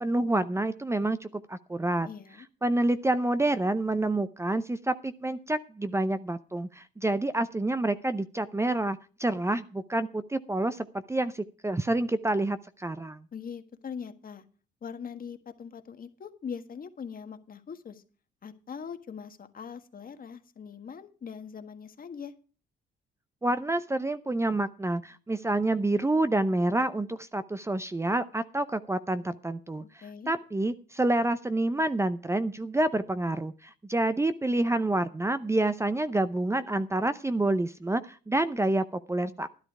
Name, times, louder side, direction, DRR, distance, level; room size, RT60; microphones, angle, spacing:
voice 1, 0.0-2.1 2.6-13.2 23.4-39.5, right 2 dB, 15° right, 12 dB, 0.6 m, -28 dB
voice 2, 2.0-2.5 13.3-14.4 14.8-18.0 18.4-22.3 30.0-30.3, left 6 dB, 45° left, 8 dB, 1.6 m, -41 dB
12.5 x 11.0 x 4.8 m, 0.36 s
cardioid pair, 90°, 20 cm